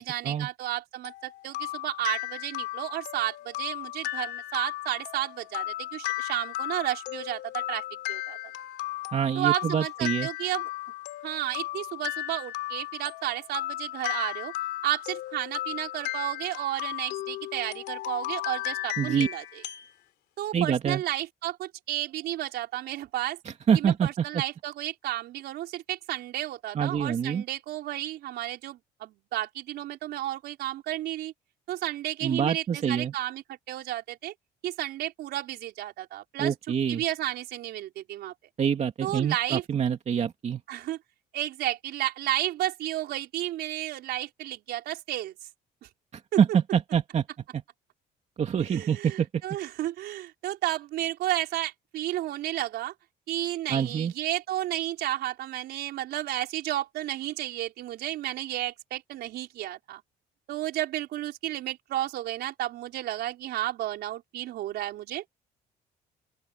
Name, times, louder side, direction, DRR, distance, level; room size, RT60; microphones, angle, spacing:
voice 1, 0.0-8.4 9.3-10.7 11.2-14.5 14.8-19.6 20.4-23.4 23.7-31.3 31.7-34.3 34.6-36.5 36.9-38.3 39.0-39.6 40.7-41.0 41.3-45.3 46.3-46.4 48.7-52.9 53.3-60.0 60.5-65.2, right 14 dB, 75° right, 4.6 m, -32 dB
sound 1, 1.0-19.9, left 16 dB, 80° left, 2.9 m, -35 dB
voice 2, 9.1-10.3 19.0-19.3 20.5-21.0 23.7-24.4 26.7-27.4 32.2-33.1 36.4-37.0 38.6-40.6 46.1-47.2 47.5-47.6 48.4-49.3 53.7-54.1, right 7 dB, 40° right, 2.5 m, -26 dB
open air
cardioid pair, 110°, 17 cm